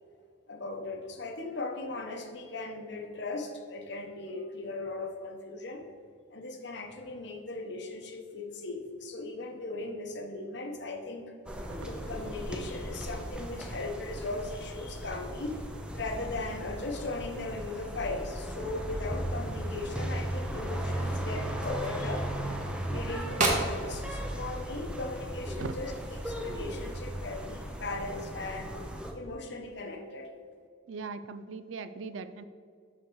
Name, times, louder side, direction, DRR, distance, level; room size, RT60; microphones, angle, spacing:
voice 1, 0.5-5.9 6.3-11.3 11.8-15.6 15.9-22.3 22.8-28.7 29.1-30.3, left 2 dB, 60° left, 4 dB, 0.9 m, -38 dB
sound 1, 11.5-29.1, right 1 dB, 5° right, 0.5 m, -36 dB
sound 2, 19.3-26.9, right 2 dB, 40° right, 1.3 m, -37 dB
voice 2, 30.9-32.4, right 4 dB, 70° right, 12 dB, 0.4 m, -39 dB
6.5 x 6.3 x 4.7 m, 2.1 s
head